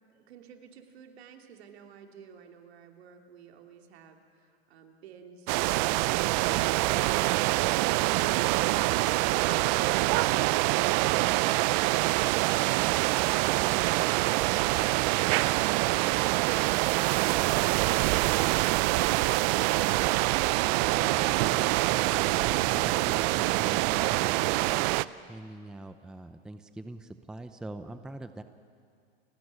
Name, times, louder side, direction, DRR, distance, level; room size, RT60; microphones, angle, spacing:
voice 1, 0.1-8.5, right 7 dB, 70° right, 4 dB, 3.0 m, -53 dB
sound 1, 5.5-25.0, right 20 dB, 40° right, 0.5 m, -25 dB
voice 2, 20.9-24.9 25.3-28.4, right 1 dB, ahead, 9 dB, 0.7 m, -43 dB
29.0 x 15.0 x 9.6 m, 2.2 s
supercardioid pair, 135°, 33 cm